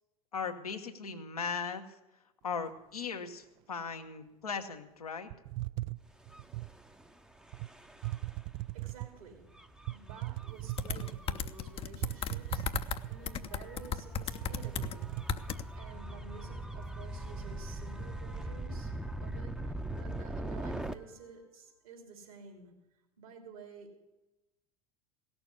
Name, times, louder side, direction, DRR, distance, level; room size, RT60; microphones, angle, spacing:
voice 1, 0.3-1.8 2.4-5.3, left 5 dB, 85° left, 5 dB, 1.2 m, -38 dB
sound 1, 5.3-6.8 7.5-7.7 8.0-9.2 9.9-11.5 12.0-13.5 13.8-13.9 14.2-15.4, right 19 dB, 45° right, 0.4 m, -38 dB
Gull seagull / Waves surf / Siren, 6.2-20.9, right 1 dB, 5° right, 0.7 m, -42 dB
voice 2, 8.7-9.5 9.9-15.2 15.5-22.8 23.2-23.9, right 5 dB, 75° right, 3 dB, 3.3 m, -52 dB
sound 2, 10.8-13.0 13.2-14.9 15.3-15.6, left 8 dB, 30° left, 0.6 m, -35 dB
17.0 x 6.9 x 8.2 m, 0.99 s
figure-of-eight pair, 80°, 19 cm